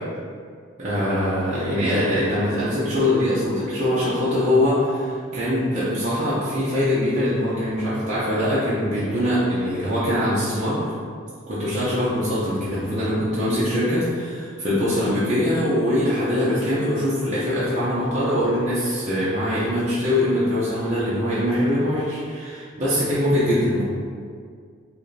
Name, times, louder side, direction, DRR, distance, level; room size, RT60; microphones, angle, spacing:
voice 1, 0.8-10.9 11.5-23.8, left 1 dB, 35° right, -11 dB, 0.6 m, -22 dB
4.7 x 2.5 x 2.6 m, 2.1 s
head